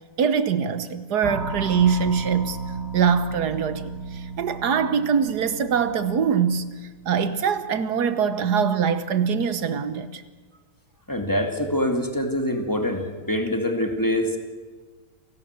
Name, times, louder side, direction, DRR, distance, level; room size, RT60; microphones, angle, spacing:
voice 1, 0.2-2.6 2.9-6.7 7.1-10.2, right 7 dB, 75° right, 1.6 m, -23 dB
sound 1, 1.2-7.6, right 5 dB, 40° right, 2.0 m, -34 dB
voice 2, 11.1-14.4, left 1 dB, 10° left, 2.4 m, -25 dB
29.0 x 18.0 x 8.2 m
omnidirectional pair, 1.8 m